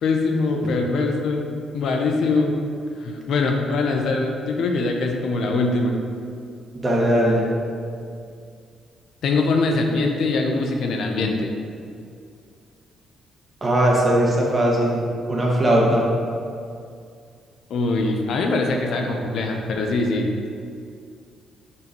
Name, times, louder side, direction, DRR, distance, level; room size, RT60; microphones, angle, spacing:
voice 1, 0.0-1.5 1.7-2.5 3.0-5.9 9.2-11.5 17.7-20.5, left 3 dB, 70° left, 2 dB, 0.7 m, -22 dB
voice 2, 6.8-7.4 13.6-15.0 15.3-16.1, right 1 dB, 25° right, -3 dB, 1.7 m, -19 dB
5.5 x 4.7 x 5.3 m, 2.3 s
cardioid pair, 90°, 0 cm